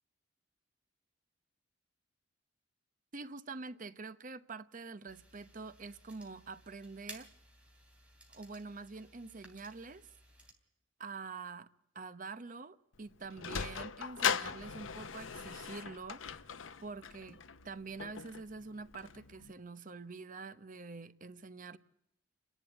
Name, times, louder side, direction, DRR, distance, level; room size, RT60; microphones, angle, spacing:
voice 1, 3.1-7.3 8.3-10.0 11.0-11.7 11.9-21.8, right 4 dB, 45° right, 0.9 m, -46 dB
sound 1, 5.1-10.5, right 1 dB, 5° right, 3.3 m, -57 dB
Sliding door, 12.9-19.5, left 7 dB, 90° left, 0.8 m, -39 dB
29.0 x 11.0 x 9.5 m
head